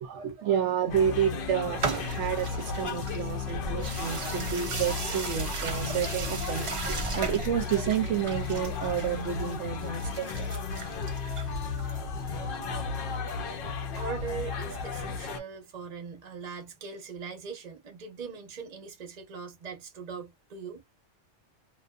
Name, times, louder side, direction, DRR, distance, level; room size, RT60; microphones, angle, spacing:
voice 1, 0.0-10.5, right 9 dB, 75° right, 0.9 m, -30 dB
sound 1, 0.9-15.4, left 5 dB, 60° left, 0.7 m, -34 dB
sound 2, 1.8-12.4, right 4 dB, 55° right, 0.3 m, -37 dB
voice 2, 13.9-20.8, right 5 dB, 40° right, 0.8 m, -40 dB
2.5 x 2.3 x 2.2 m
omnidirectional pair, 1.2 m